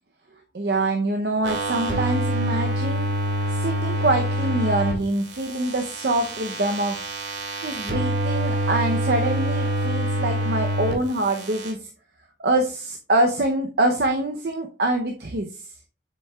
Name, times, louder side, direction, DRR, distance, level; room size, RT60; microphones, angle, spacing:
voice 1, 0.5-3.1 3.5-7.0 7.6-11.9 12.4-15.7, right 2 dB, 60° right, 4 dB, 0.7 m, -25 dB
sound 1, 1.4-4.9 5.3-10.9 11.2-11.7, equal, 90° right, 2.0 m, -26 dB
7.2 x 6.9 x 2.3 m, 0.35 s
head